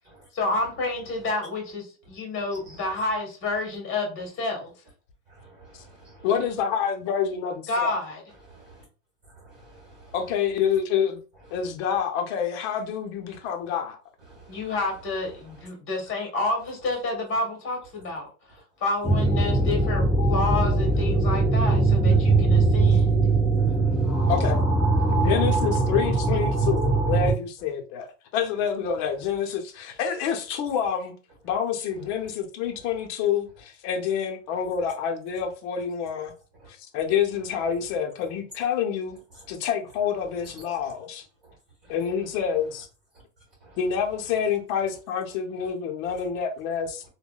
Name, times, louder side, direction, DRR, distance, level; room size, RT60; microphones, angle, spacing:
voice 1, 0.3-4.7 7.7-8.2 14.5-18.3 18.8-23.2, left 2 dB, 25° left, 1.2 m, -29 dB
voice 2, 2.5-2.8 5.3-6.3 8.5-8.8 9.2-10.2 11.5-11.7 14.2-14.8 15.4-15.7 19.5-19.7 23.5-24.3 25.2-25.3 32.8-33.0 34.5-34.6 36.6-36.7 39.3-39.6 41.4-41.5 41.8-41.9 43.6-43.8 45.6-45.7 46.1-46.2, right 2 dB, 25° right, 1.5 m, -51 dB
voice 3, 6.2-8.0 10.1-11.2 11.5-14.0 24.3-24.6 25.1-31.1 31.4-36.3 36.9-39.2 39.5-41.2 41.9-42.9 43.8-47.0, left 7 dB, 50° left, 0.7 m, -27 dB
sound 1, 19.0-27.3, right 3 dB, 5° right, 0.6 m, -21 dB
3.5 x 2.2 x 2.3 m
supercardioid pair, 135°, 46 cm